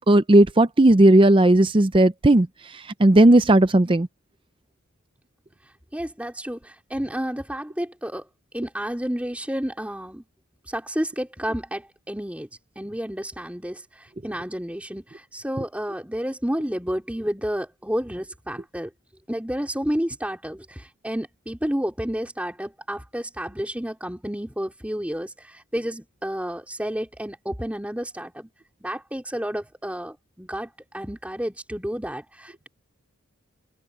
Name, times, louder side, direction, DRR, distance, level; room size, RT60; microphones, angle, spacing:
voice 1, 0.1-2.5 3.0-4.1, right 1 dB, 25° right, 0.6 m, -15 dB
voice 2, 5.9-8.3 8.5-10.2 10.7-12.5 12.8-18.9 19.3-28.5 28.8-32.7, equal, 5° right, 3.5 m, -30 dB
head